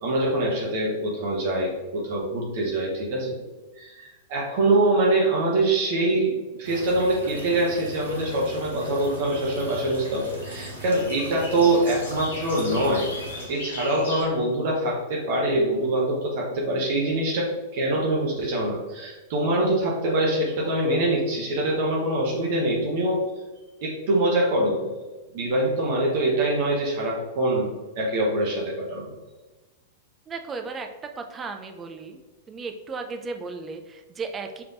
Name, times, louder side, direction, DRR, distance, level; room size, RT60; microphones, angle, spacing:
voice 1, 0.0-3.4 3.8-13.1 13.5-23.2 23.8-24.9 25.3-29.1, right 1 dB, 50° right, -3 dB, 0.9 m, -24 dB
sound 1, 6.6-13.5, right 1 dB, 75° right, 1.0 m, -40 dB
sound 2, 7.9-14.2, left 2 dB, 65° left, 1.1 m, -40 dB
voice 2, 30.3-32.2 32.5-34.6, right 4 dB, 20° right, 5 dB, 0.5 m, -35 dB
5.7 x 3.3 x 2.5 m, 1.2 s
figure-of-eight pair, 95°, 0 cm